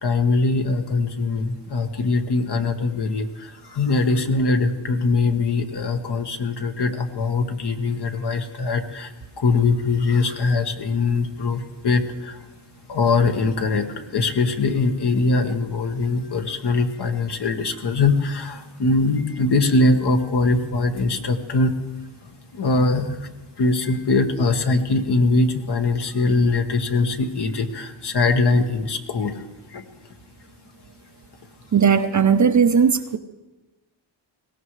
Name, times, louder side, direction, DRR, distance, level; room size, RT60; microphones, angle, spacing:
voice 1, 0.0-12.4 12.9-21.7 22.5-23.2 23.6-29.4 29.7-29.8, left 3 dB, 55° left, 5 dB, 1.5 m, -22 dB
voice 2, 31.7-33.2, right 6 dB, 40° right, 9 dB, 0.7 m, -17 dB
21.5 x 17.5 x 3.2 m, 1.1 s
cardioid pair, 90°, 47 cm